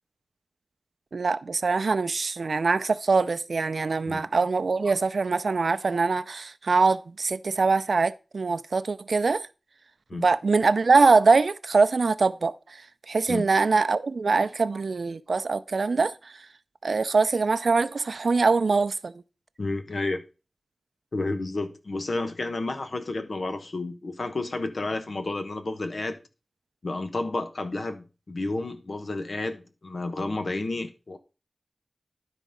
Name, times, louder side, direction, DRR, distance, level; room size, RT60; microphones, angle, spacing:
voice 1, 1.1-9.5 10.1-12.6 13.1-16.1 16.8-19.1, right 4 dB, 85° right, 0.5 m, -23 dB
voice 2, 19.6-20.2 21.1-26.2 26.8-31.2, left 2 dB, 70° left, 1.1 m, -31 dB
12.0 x 4.0 x 5.2 m
wide cardioid pair, 50°, 0 cm